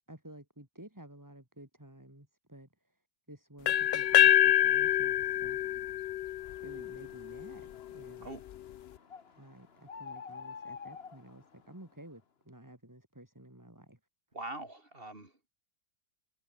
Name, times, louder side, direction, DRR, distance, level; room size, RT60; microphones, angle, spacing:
voice 1, 0.1-3.0 3.3-5.6 6.6-8.3 9.3-14.0, right 1 dB, 10° right, 3.4 m, -52 dB
sound 1, 3.7-7.5, left 12 dB, 70° left, 0.6 m, -26 dB
sound 2, 6.4-12.0, left 6 dB, 45° left, 1.5 m, -50 dB
voice 2, 14.3-15.5, right 2 dB, 40° right, 4.5 m, -43 dB
omnidirectional pair, 1.5 m